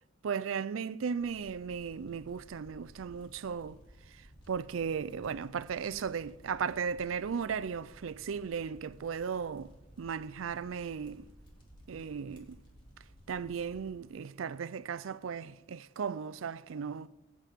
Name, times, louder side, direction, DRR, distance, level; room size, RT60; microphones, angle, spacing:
voice 1, 0.2-3.8 4.5-11.3 11.9-12.6 13.3-17.1, right 6 dB, 90° right, 0.4 m, -36 dB
sound 1, 1.2-13.9, equal, 25° left, 2.3 m, -57 dB
20.0 x 8.9 x 3.5 m
head